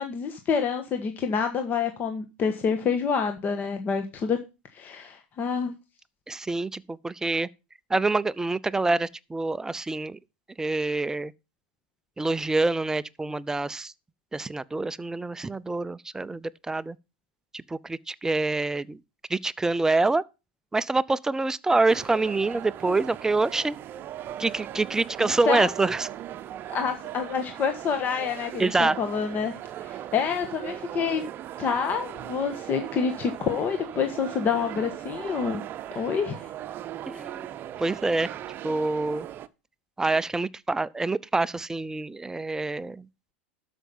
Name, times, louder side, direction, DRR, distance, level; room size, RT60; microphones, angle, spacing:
voice 1, 0.0-4.4 4.7-5.7 25.2-25.7 26.7-29.5 29.8-31.2 31.6-35.6 35.9-36.5, left 6 dB, 35° left, 1.5 m, -27 dB
voice 2, 6.3-7.5 7.9-10.2 10.6-11.3 12.2-13.9 14.3-17.0 17.5-19.0 19.3-20.2 20.7-23.8 24.4-26.1 28.6-29.0 37.1-37.5 37.8-38.4 38.6-39.3 40.0-43.1, right 3 dB, 10° right, 0.5 m, -26 dB
sound 1, 21.9-39.5, right 12 dB, 35° right, 0.8 m, -38 dB
12.5 x 5.8 x 5.4 m
hypercardioid pair, 110°, 6 cm